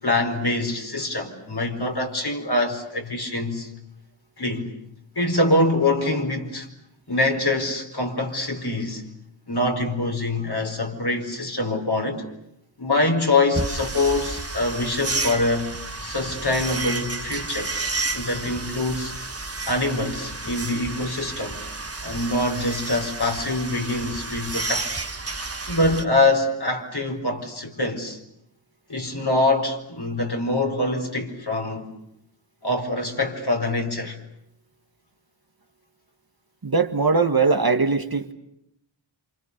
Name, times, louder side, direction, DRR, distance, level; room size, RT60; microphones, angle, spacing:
voice 1, 0.0-3.7 4.4-4.7 5.1-6.7 7.1-9.0 9.5-12.2 12.8-15.7 16.0-17.7 18.1-19.1 19.7-21.6 22.0-24.9 25.7-28.2 28.9-31.9 32.6-34.2, left 2 dB, 50° left, 4.7 m, -24 dB
sound 1, 13.5-26.1, right 3 dB, 30° right, 1.5 m, -31 dB
voice 2, 36.6-38.3, right 4 dB, 50° right, 1.7 m, -20 dB
28.5 x 27.0 x 6.7 m
wide cardioid pair, 55°, 48 cm